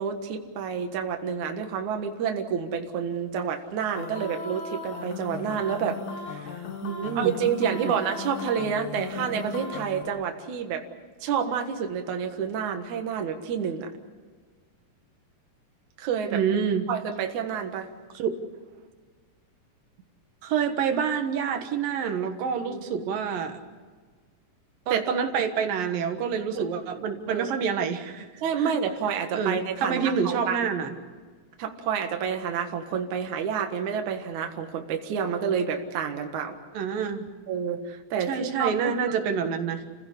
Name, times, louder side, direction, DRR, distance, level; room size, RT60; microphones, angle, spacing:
voice 1, 0.0-6.6 7.2-10.9 11.2-13.9 16.0-16.4 16.9-17.9 22.7-23.1 24.9-25.1 26.5-26.6 27.3-27.5 28.4-30.7 31.6-36.6 37.5-39.2, right 7 dB, 65° right, 5 dB, 2.9 m, -29 dB
sound 1, 4.0-10.0, left 4 dB, 60° left, 3.1 m, -37 dB
voice 2, 6.8-7.3 7.7-7.9 16.3-16.8 18.1-18.3 20.4-23.6 24.9-28.7 29.3-30.9 36.7-37.3 38.3-39.8, right 7 dB, 85° right, 6 dB, 3.2 m, -27 dB
30.0 x 16.0 x 8.3 m, 1.5 s
omnidirectional pair, 3.9 m